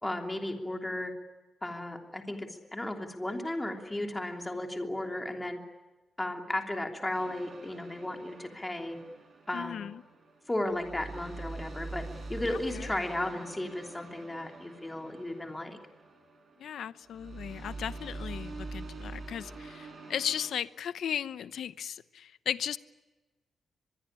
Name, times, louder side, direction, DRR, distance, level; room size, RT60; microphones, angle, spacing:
voice 1, 0.0-1.1 1.6-5.6 6.2-9.0 9.5-9.9 10.5-12.0 12.3-15.8, left 1 dB, 10° left, 4 dB, 3.1 m, -35 dB
sound 1, 7.1-20.5, right 3 dB, 45° right, 6.9 m, -45 dB
voice 2, 9.5-10.0 12.7-12.9 16.6-22.8, left 9 dB, 75° left, 15 dB, 0.8 m, -36 dB
24.5 x 21.5 x 10.0 m, 1.2 s
wide cardioid pair, 145°, 0 cm